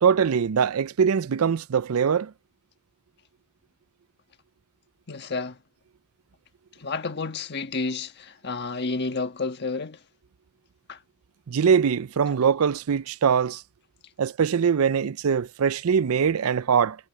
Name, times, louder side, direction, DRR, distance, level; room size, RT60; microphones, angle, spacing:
voice 1, 0.0-2.3 11.5-13.6 14.2-17.0, right 7 dB, 80° right, 0.5 m, -22 dB
voice 2, 5.1-5.6 6.7-10.0 10.9-11.0, left 3 dB, 50° left, 1.4 m, -30 dB
head